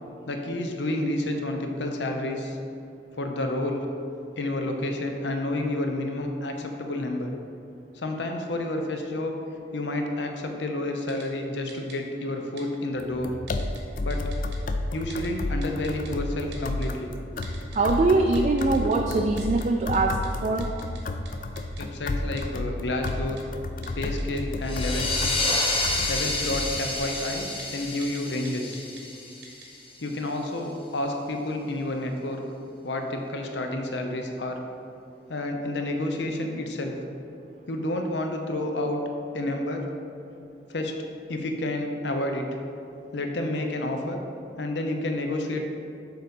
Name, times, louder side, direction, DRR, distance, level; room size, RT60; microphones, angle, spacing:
voice 1, 0.3-2.6 3.2-3.9 4.4-7.3 7.9-9.4 9.7-13.3 14.0-14.2 14.9-17.1 21.8-23.4 24.0-25.3 26.1-28.8 30.0-32.4 32.8-34.6 35.3-36.9 37.7-39.0 39.3-39.8 40.7-40.9 41.3-42.5 43.1-44.2 44.6-45.6, left 1 dB, 85° left, 3 dB, 0.7 m, -30 dB
Typing, 11.1-11.3 11.7-12.0 12.6-12.7 13.5-13.8 14.1-14.6 15.1-15.3 15.6-16.1 16.5-16.9 17.4-17.9 18.4-19.0 19.4-19.6 19.9-20.0 20.2-20.3 20.6-21.0 21.3-21.4 21.6-21.8 22.4-22.5 23.1-23.4 23.8-24.4 24.7-25.8 26.2-26.9 27.2-27.3 27.6-27.7 28.0-28.2 28.5-29.0 29.4-29.7, right 5 dB, 80° right, 1.2 m, -46 dB
sound 1, 13.0-27.0, left 2 dB, 45° left, 0.4 m, -32 dB
voice 2, 17.7-20.7, right 3 dB, 40° right, 3 dB, 0.3 m, -23 dB
sound 2, 24.6-30.0, left 2 dB, 30° left, 0.8 m, -29 dB
6.8 x 3.9 x 5.3 m, 2.5 s
head